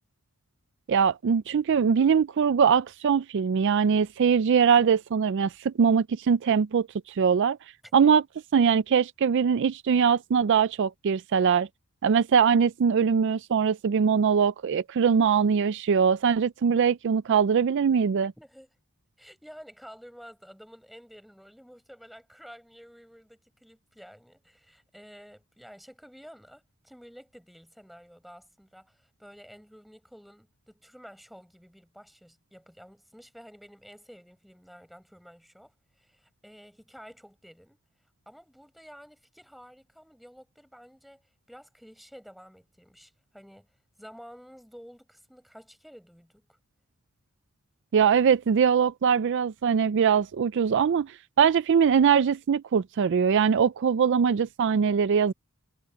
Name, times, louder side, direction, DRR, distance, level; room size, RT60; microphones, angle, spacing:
voice 1, 0.9-7.6 7.9-8.2 8.5-11.7 12.0-18.3 47.9-55.3, right 6 dB, 55° right, 0.4 m, -22 dB
voice 2, 18.4-18.7 19.2-37.8 38.3-41.2 41.5-43.7 44.0-46.6, equal, ahead, 7.0 m, -51 dB
head